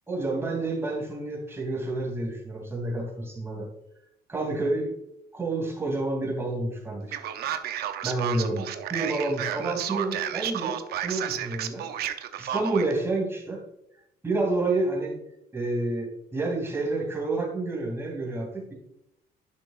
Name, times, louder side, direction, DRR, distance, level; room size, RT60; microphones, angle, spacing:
voice 1, 0.1-3.7 4.3-4.9 5.3-7.2 8.0-13.6 14.2-15.1 15.5-18.7, right 2 dB, 15° right, -2 dB, 2.8 m, -29 dB
Male speech man speaking, 7.1-12.9, right 10 dB, 70° right, 0.7 m, -32 dB
10.5 x 6.1 x 2.5 m, 0.84 s
cardioid pair, 110°, 17 cm